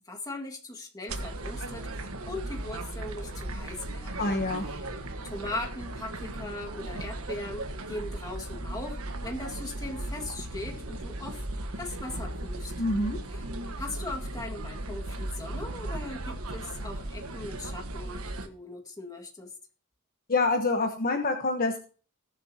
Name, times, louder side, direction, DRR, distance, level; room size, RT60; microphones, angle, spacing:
voice 1, 0.1-4.3 4.7-4.8 5.2-11.4 11.8-12.7 13.3-13.4 13.8-19.5, left 2 dB, 20° left, 1 dB, 2.0 m, -39 dB
sound 1, 1.1-18.5, right 1 dB, 80° right, 1.4 m, -37 dB
voice 2, 4.2-4.7 12.8-13.2 20.3-21.8, left 3 dB, 45° left, 5 dB, 1.2 m, -26 dB
19.5 x 7.5 x 2.9 m, 0.39 s
head